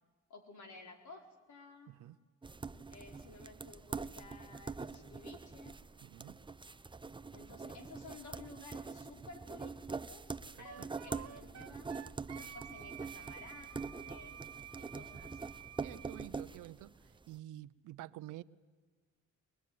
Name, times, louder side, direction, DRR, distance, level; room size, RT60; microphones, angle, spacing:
voice 1, 0.3-1.9 2.9-5.8 7.3-11.9 12.3-14.5 14.8-15.5, left 3 dB, 70° left, 4 dB, 4.3 m, -54 dB
sound 1, 2.4-17.2, right 4 dB, 15° right, 0.8 m, -45 dB
voice 2, 6.0-6.4 10.8-10.9 15.8-16.9 17.3-18.4, right 15 dB, 90° right, 15 dB, 0.8 m, -49 dB
Wind instrument woodwind instrument, 10.6-16.3, right 11 dB, 55° right, 0.8 m, -51 dB
23.5 x 20.5 x 9.4 m, 1.4 s
cardioid pair, 90°, 30 cm